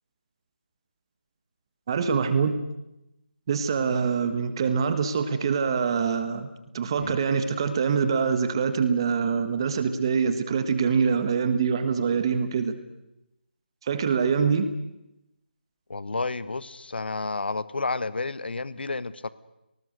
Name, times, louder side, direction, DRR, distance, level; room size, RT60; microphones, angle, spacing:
voice 1, 1.9-2.6 3.5-6.5 6.7-12.7 13.8-14.7, right 6 dB, 25° right, 10 dB, 1.6 m, -24 dB
voice 2, 15.9-19.3, left 3 dB, 70° left, 16 dB, 1.1 m, -31 dB
29.0 x 19.5 x 6.6 m, 0.90 s
figure-of-eight pair, 165°, 6 cm